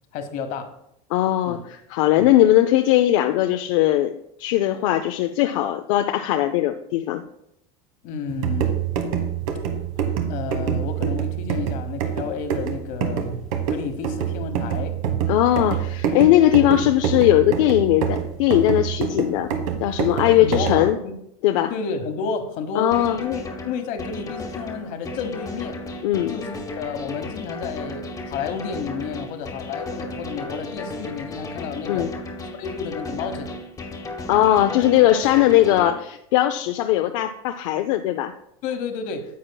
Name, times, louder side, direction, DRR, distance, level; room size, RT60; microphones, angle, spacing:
voice 1, 0.1-0.7 1.4-1.6 2.2-2.4 8.0-8.7 10.3-13.3 13.7-15.0 16.6-16.7 20.3-21.1 21.7-25.8 26.3-32.1 32.5-33.5 38.6-39.3, left 5 dB, 50° left, 8 dB, 1.1 m, -31 dB
voice 2, 1.1-4.1 4.4-7.2 15.3-19.5 19.8-21.0 21.4-21.7 22.8-23.2 26.0-26.4 31.9-32.1 34.3-38.3, left 13 dB, 75° left, 7 dB, 0.5 m, -19 dB
sound 1, 8.3-20.9, right 8 dB, 85° right, 1.1 m, -26 dB
sound 2, 22.9-35.9, left 2 dB, 20° left, 1.0 m, -34 dB
10.0 x 7.3 x 2.2 m, 0.77 s
supercardioid pair, 145°, 17 cm